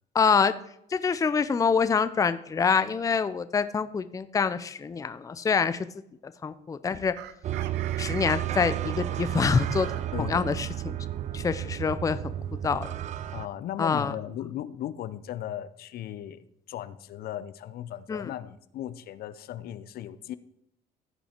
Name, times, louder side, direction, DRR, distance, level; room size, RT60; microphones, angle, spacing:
voice 1, 0.1-0.5 0.9-5.9 6.2-7.1 8.0-9.9 10.2-11.0 11.3-12.2 12.6-12.9 13.8-14.1 18.1-18.3, left 5 dB, 20° left, 13 dB, 0.5 m, -26 dB
Knock, 6.9-7.6, left 5 dB, 45° left, 1.3 m, -49 dB
Chicken rooster, 7.2-10.0, right 12 dB, 85° right, 0.7 m, -41 dB
sound 1, 7.4-13.5, right 12 dB, 45° right, 0.4 m, -32 dB
voice 2, 10.1-10.6 13.3-20.4, left 11 dB, 65° left, 15 dB, 0.6 m, -37 dB
15.5 x 5.5 x 4.4 m, 0.77 s
cardioid pair, 110°, 17 cm